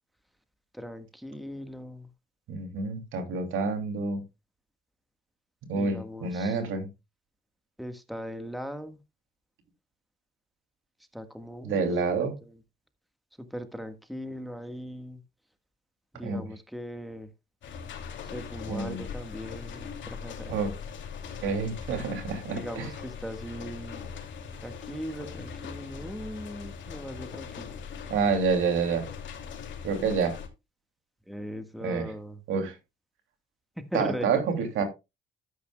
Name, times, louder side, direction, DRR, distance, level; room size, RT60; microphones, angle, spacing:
voice 1, 0.7-2.1 5.7-6.6 7.8-9.0 11.1-11.8 12.4-12.6 13.4-15.2 16.1-17.3 18.2-20.6 22.5-24.1 24.6-27.8 31.3-32.4 33.8-34.8, equal, ahead, 8 dB, 1.5 m, -39 dB
voice 2, 2.5-4.2 5.7-6.9 11.6-12.4 16.2-16.5 18.7-19.0 20.5-20.7 21.4-22.9 28.1-29.1 29.8-30.4 31.8-32.1 32.5-32.8 33.9-34.8, right 5 dB, 85° right, 6 dB, 2.7 m, -28 dB
sound 1, 17.6-30.5, left 6 dB, 70° left, 2.8 m, -40 dB
12.5 x 9.5 x 2.3 m, 0.25 s
cardioid pair, 90°, 20 cm